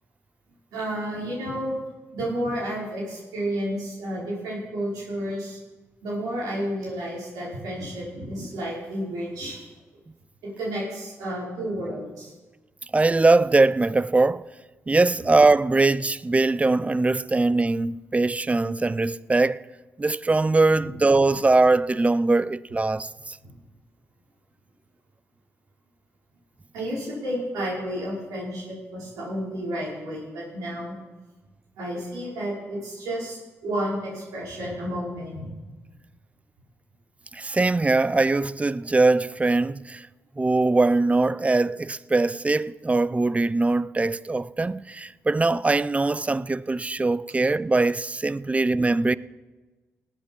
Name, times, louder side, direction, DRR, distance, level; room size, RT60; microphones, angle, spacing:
voice 1, 0.7-1.8 2.1-5.6 6.0-9.6 10.4-12.3 20.8-20.9 23.4-23.6 26.7-31.0 31.8-35.6, equal, 85° right, 5.0 m, -31 dB
voice 2, 12.9-14.5 14.9-19.6 20.0-23.4 37.3-40.1 40.4-49.2, right 3 dB, 20° right, 0.5 m, -21 dB
18.0 x 8.1 x 5.4 m
supercardioid pair, 55°, 6 cm